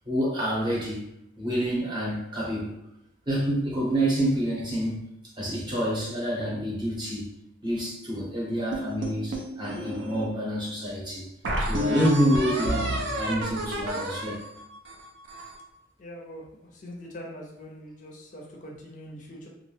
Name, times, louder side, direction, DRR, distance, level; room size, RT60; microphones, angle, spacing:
voice 1, 0.1-1.0 1.4-2.8 3.3-5.1 5.4-7.3 7.6-11.3 11.6-14.4, equal, 25° right, -5 dB, 0.7 m, -28 dB
sound 1, 8.7-10.3 10.8-10.9 11.4-15.6, equal, 65° right, 0.4 m, -30 dB
voice 2, 16.0-19.5, equal, 40° left, -1 dB, 0.4 m, -43 dB
2.3 x 2.0 x 3.2 m, 0.81 s
head